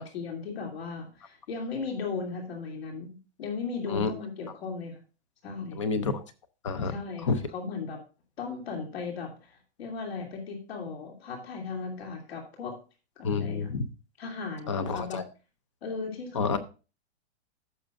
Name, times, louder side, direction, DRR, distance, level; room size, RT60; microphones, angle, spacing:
voice 1, 0.0-5.0 5.4-5.8 6.8-8.0 8.4-12.8 13.2-13.7 14.2-15.2 15.8-16.6, left 4 dB, 65° left, 1 dB, 2.8 m, -36 dB
voice 2, 5.7-6.2 6.6-6.9 7.2-7.4 13.2-13.9 14.7-15.2 16.3-16.6, left 4 dB, 30° left, 13 dB, 0.5 m, -28 dB
15.5 x 6.3 x 2.5 m, 0.33 s
hypercardioid pair, 180°, 34 cm